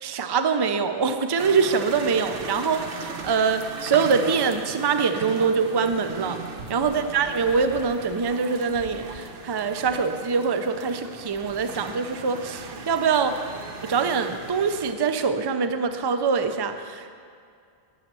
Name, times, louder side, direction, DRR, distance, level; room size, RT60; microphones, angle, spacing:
voice 1, 0.0-6.4 6.7-13.4 13.8-17.1, right 5 dB, 35° right, 8 dB, 0.4 m, -24 dB
sound 1, 1.4-14.9, right 4 dB, 65° right, 1.0 m, -38 dB
10.5 x 6.5 x 7.5 m, 2.3 s
omnidirectional pair, 1.0 m